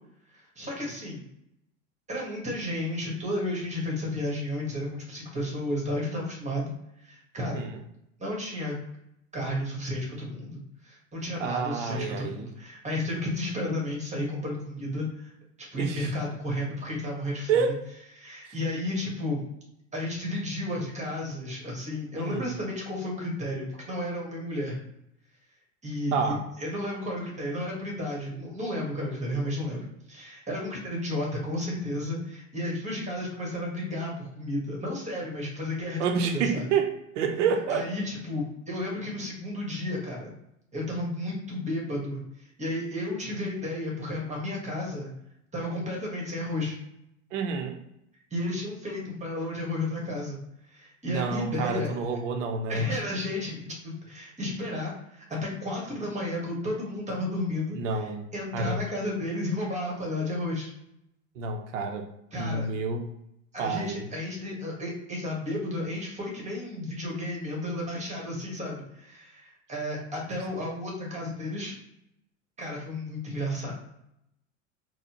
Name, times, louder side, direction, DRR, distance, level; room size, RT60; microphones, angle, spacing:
voice 1, 0.3-1.3 2.1-6.7 7.0-7.6 8.2-8.7 9.3-15.3 15.6-17.7 18.1-19.4 19.9-24.8 25.8-29.8 30.1-36.7 37.7-40.3 40.7-45.1 45.5-46.8 48.3-50.4 50.7-51.9 52.7-60.7 62.3-62.7 63.5-71.8 72.6-73.7, left 1 dB, 20° right, -2 dB, 1.5 m, -32 dB
voice 2, 7.4-7.8 11.4-12.5 15.8-16.1 17.5-17.8 22.1-22.5 26.1-26.4 36.0-37.9 47.3-47.8 51.1-52.9 57.7-58.3 58.5-58.8 61.4-62.1 62.4-63.1 63.6-64.1, right 5 dB, 65° right, 5 dB, 0.8 m, -29 dB
4.1 x 2.3 x 2.9 m, 0.80 s
hypercardioid pair, 85°, 39 cm